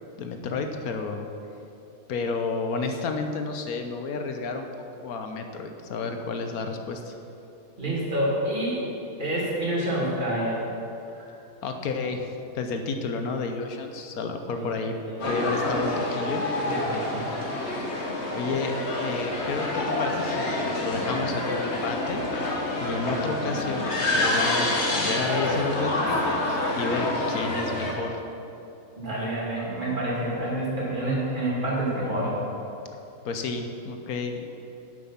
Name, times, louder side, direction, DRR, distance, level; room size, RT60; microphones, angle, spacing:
voice 1, 0.2-1.3 2.1-4.7 5.0-7.1 11.6-14.9 15.3-16.4 18.3-22.2 22.8-28.2 33.2-34.5, left 4 dB, 70° left, 5 dB, 1.3 m, -31 dB
voice 2, 7.8-8.8 9.2-10.6 11.1-11.3 14.6-14.7 15.1-15.3 16.6-17.3 29.0-32.3, right 1 dB, 30° right, -6 dB, 2.6 m, -28 dB
sound 1, 15.2-27.9, left 2 dB, 45° left, 1.5 m, -27 dB
9.8 x 7.9 x 5.7 m, 2.9 s
omnidirectional pair, 1.6 m